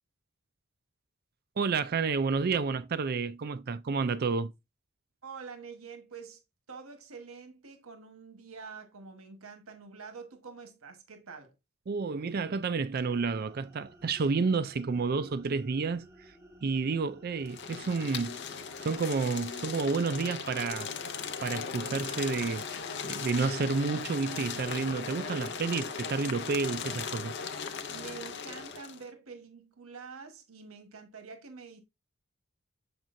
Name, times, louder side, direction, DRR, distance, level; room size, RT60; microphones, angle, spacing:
voice 1, 1.6-4.5 11.9-16.0 16.6-18.4 18.8-20.9 21.4-22.7 23.0-27.3, right 4 dB, 45° right, 0.4 m, -30 dB
voice 2, 5.2-6.4 6.7-11.5 27.9-31.8, right 5 dB, 80° right, 1.2 m, -46 dB
sound 1, 13.0-28.8, right 1 dB, 15° right, 1.2 m, -55 dB
sound 2, 17.5-29.0, left 6 dB, 55° left, 0.6 m, -38 dB
7.2 x 6.0 x 2.6 m
head